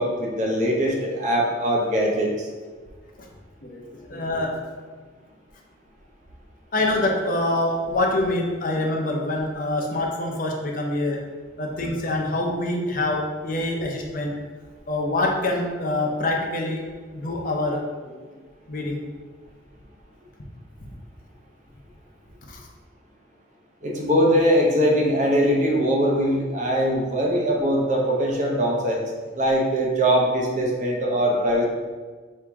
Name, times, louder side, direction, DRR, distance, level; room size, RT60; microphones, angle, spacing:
voice 1, 0.0-2.5 23.8-29.0 29.3-31.6, equal, 40° right, -1 dB, 0.7 m, -21 dB
voice 2, 4.1-4.6 6.7-11.2 11.6-14.3 14.9-16.8 17.1-18.3 18.7-19.0 22.5-22.6, left 2 dB, 45° left, 0 dB, 0.6 m, -25 dB
4.6 x 2.7 x 3.5 m, 1.4 s
head